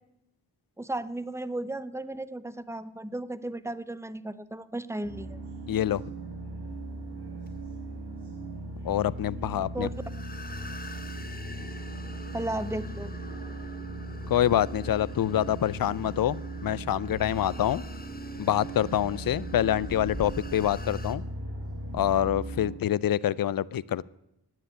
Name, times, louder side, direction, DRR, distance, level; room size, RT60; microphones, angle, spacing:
voice 1, 0.8-5.4 9.7-9.9 12.3-13.1, right 1 dB, 5° right, 15 dB, 0.6 m, -35 dB
sound 1, 5.0-22.7, right 2 dB, 65° right, 3.8 m, -38 dB
voice 2, 5.7-6.0 8.8-9.9 14.3-17.8 18.4-21.2 21.9-24.0, left 11 dB, 55° left, 21 dB, 0.5 m, -26 dB
sound 2, 6.7-21.1, left 2 dB, 20° left, 1.1 m, -46 dB
9.8 x 9.4 x 9.5 m, 0.85 s
wide cardioid pair, 60°, 42 cm